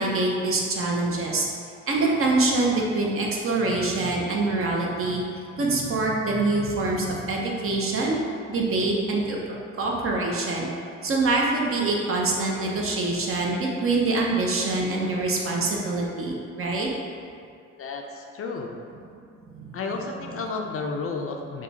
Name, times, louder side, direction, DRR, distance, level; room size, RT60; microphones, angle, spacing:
voice 1, 0.0-1.5 1.9-5.2 5.5-8.2 8.5-9.4 9.8-10.7 11.0-16.9 19.5-19.8, right 2 dB, 45° right, -2 dB, 0.7 m, -25 dB
voice 2, 17.7-18.8 19.7-21.6, left 4 dB, 50° left, 2 dB, 0.4 m, -32 dB
4.8 x 2.3 x 2.8 m, 2.4 s
cardioid pair, 90°, 30 cm